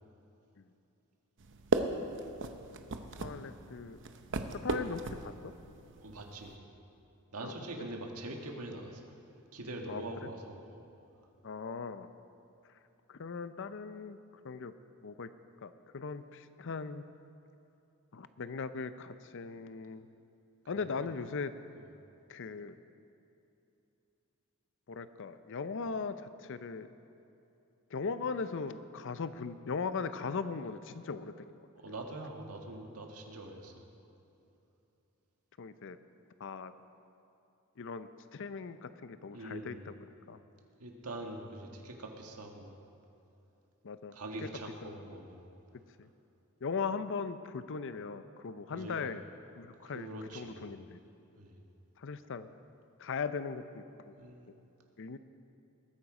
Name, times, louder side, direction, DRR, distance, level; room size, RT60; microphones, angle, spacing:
sound 1, 1.4-6.6, right 3 dB, 55° right, 0.8 m, -37 dB
voice 1, 3.2-4.0 4.6-5.5 7.4-7.5 7.8-7.9 9.9-10.3 11.4-12.1 13.1-14.2 14.4-14.7 15.0-15.3 15.6-17.0 18.1-20.1 20.7-21.5 22.3-22.8 24.9-26.9 27.9-31.5 31.9-32.0 35.6-36.0 36.4-36.7 37.8-40.0 40.3-40.4 43.8-44.5 44.8-45.0 46.0-46.1 46.6-49.2 49.6-51.0 52.0-52.5 53.0-54.1 55.0-55.2, left 5 dB, 55° left, 12 dB, 0.6 m, -39 dB
voice 2, 6.0-6.6 7.3-9.0 9.5-10.8 20.8-21.1 31.7-33.7 39.3-39.8 40.8-42.8 44.1-45.4 48.7-49.1 49.8-50.6 51.4-51.5 54.2-54.4, right 1 dB, 80° right, 2 dB, 1.7 m, -43 dB
20.5 x 9.2 x 4.9 m, 2.8 s
head